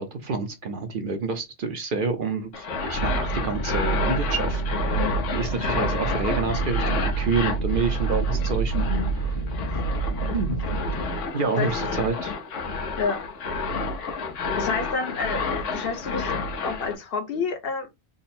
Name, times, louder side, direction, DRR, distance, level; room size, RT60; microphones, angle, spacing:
voice 1, 0.0-4.6 5.3-8.9 10.2-10.6 11.3-12.3, right 4 dB, 55° right, 0.7 m, -28 dB
sound 1, 2.5-16.9, left 4 dB, 80° left, 1.2 m, -30 dB
sound 2, 2.9-11.0, right 4 dB, 35° left, 0.5 m, -27 dB
voice 2, 8.7-9.1 11.6-11.7 12.7-13.2 14.6-16.3 16.6-17.9, left 5 dB, 55° left, 1.0 m, -29 dB
3.7 x 2.0 x 4.1 m
omnidirectional pair, 1.2 m